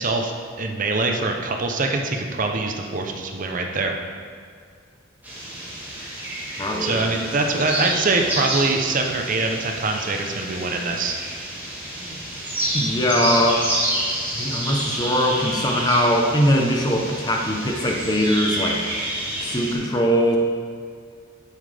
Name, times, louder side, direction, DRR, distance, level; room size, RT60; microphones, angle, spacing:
voice 1, 0.0-3.9 6.8-11.2, right 3 dB, 40° right, 3 dB, 0.7 m, -24 dB
sound 1, 5.2-19.7, right 1 dB, 10° right, 2.0 m, -29 dB
voice 2, 6.6-7.0 12.0-12.2 12.7-13.7 14.3-18.8 19.4-20.4, equal, 20° left, 1 dB, 0.8 m, -21 dB
8.6 x 7.6 x 3.4 m, 2.1 s
head